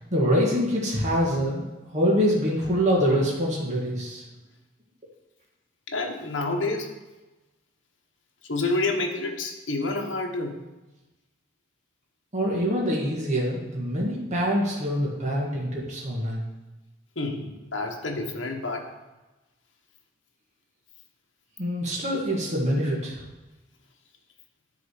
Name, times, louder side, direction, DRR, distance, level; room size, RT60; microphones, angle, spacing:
voice 1, 0.1-1.6 1.9-4.2 12.3-16.4 21.6-23.2, equal, 40° right, -4 dB, 1.7 m, -25 dB
voice 2, 5.9-6.9 8.5-10.6 17.2-18.9 22.2-22.4, left 2 dB, 70° left, 2 dB, 1.2 m, -29 dB
9.8 x 3.9 x 6.4 m, 1.1 s
head